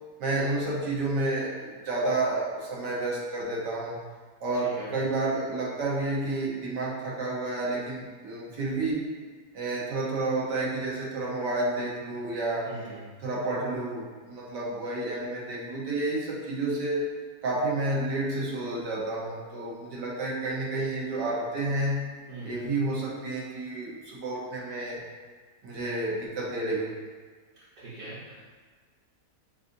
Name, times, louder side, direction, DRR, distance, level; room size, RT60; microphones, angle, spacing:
voice 1, 0.2-4.0 4.4-9.1 9.5-12.7 13.2-17.0 17.4-22.0 22.4-25.0 25.6-26.9, right 2 dB, 85° right, -5 dB, 1.6 m, -30 dB
voice 2, 12.6-13.1 22.3-22.7 27.8-28.4, right 2 dB, 55° right, -11 dB, 1.4 m, -41 dB
6.4 x 2.5 x 2.6 m, 1.5 s
omnidirectional pair, 1.8 m